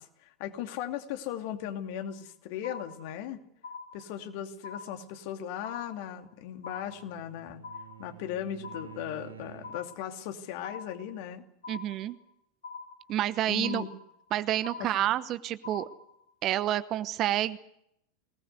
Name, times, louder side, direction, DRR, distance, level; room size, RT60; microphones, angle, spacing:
voice 1, 0.0-3.4 3.9-7.6 8.0-11.5 13.5-13.9 14.8-15.1, left 10 dB, 50° left, 7 dB, 2.6 m, -37 dB
sound 1, 2.0-2.3 2.6-3.3 3.6-4.3 4.6-5.3 5.6-6.3 6.6-7.3 7.6-8.3 8.6-9.3 9.6-10.3 10.6-11.3 11.6-12.3 12.6-13.3 13.6-14.3 14.6-15.3 15.6-16.3, left 4 dB, 65° left, 4.6 m, -45 dB
Bowed string instrument, 6.2-10.1, right 10 dB, 75° right, 1.8 m, -51 dB
voice 2, 11.7-12.2 13.1-13.8 14.3-15.9 16.4-17.6, right 13 dB, 35° right, 15 dB, 1.0 m, -29 dB
24.5 x 19.0 x 8.2 m, 0.75 s
figure-of-eight pair, 85°, 0 cm